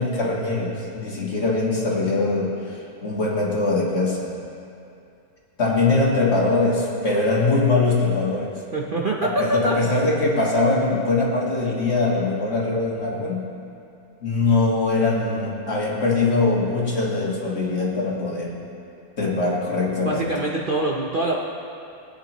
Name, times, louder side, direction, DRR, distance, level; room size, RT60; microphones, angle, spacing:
voice 1, 0.0-4.3 5.6-8.5 9.2-13.5 14.2-18.6 19.2-20.3, left 3 dB, 45° left, -4 dB, 2.1 m, -22 dB
voice 2, 8.7-9.8 20.0-21.4, right 2 dB, 45° right, -2 dB, 0.8 m, -24 dB
20.5 x 9.4 x 3.0 m, 2.6 s
omnidirectional pair, 1.6 m